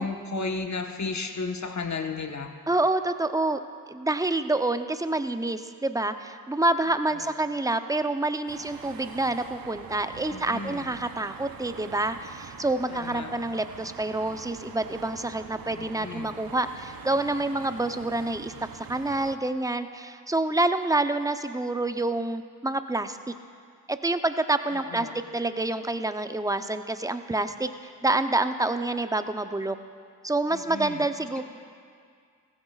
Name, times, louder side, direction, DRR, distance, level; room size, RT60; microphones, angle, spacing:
voice 1, 0.0-2.6 7.1-7.3 10.3-10.9 12.9-13.4 15.7-16.4 24.7-25.2 30.5-31.4, left 4 dB, 40° left, 5 dB, 1.3 m, -34 dB
voice 2, 2.7-3.6 3.9-23.3 23.9-25.1 25.3-27.7 28.0-29.8 30.2-31.4, right 2 dB, 10° right, 9 dB, 0.7 m, -27 dB
sound 1, 8.5-19.4, right 7 dB, 55° right, 0.9 m, -44 dB
16.5 x 15.0 x 2.5 m, 2.2 s
supercardioid pair, 40°, 42 cm